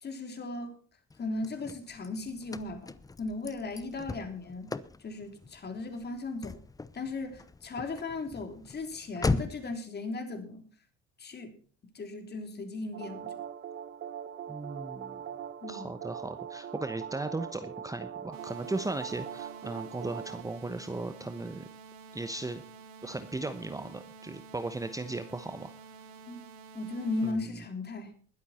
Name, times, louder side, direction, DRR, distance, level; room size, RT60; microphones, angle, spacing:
voice 1, 0.0-0.8 1.2-2.9 3.2-4.7 5.0-6.6 6.9-10.7 11.2-11.5 11.9-13.3 15.6-15.9 26.3-26.4 26.7-28.1, left 3 dB, 35° left, 6 dB, 3.4 m, -37 dB
Car / Slam, 1.1-9.8, left 3 dB, 10° left, 0.7 m, -38 dB
sound 1, 12.9-20.4, right 9 dB, 40° right, 1.0 m, -41 dB
voice 2, 14.5-15.2 15.7-21.7 22.1-22.6 23.0-25.7 27.2-27.5, right 2 dB, 10° right, 10 dB, 1.0 m, -37 dB
sound 2, 18.3-27.3, right 5 dB, 90° right, 2.3 m, -50 dB
20.5 x 8.1 x 4.3 m, 0.42 s
supercardioid pair, 95°, 30 cm